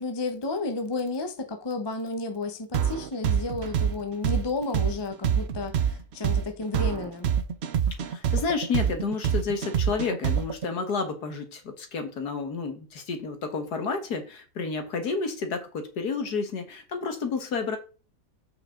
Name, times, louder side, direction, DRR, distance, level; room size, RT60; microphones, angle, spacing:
voice 1, 0.0-7.3, left 3 dB, 20° left, 0.7 m, -32 dB
sound 1, 2.7-10.7, right 8 dB, 70° right, 0.6 m, -25 dB
voice 2, 8.0-17.8, left 4 dB, 65° left, 2.0 m, -30 dB
7.7 x 5.8 x 3.8 m
omnidirectional pair, 1.9 m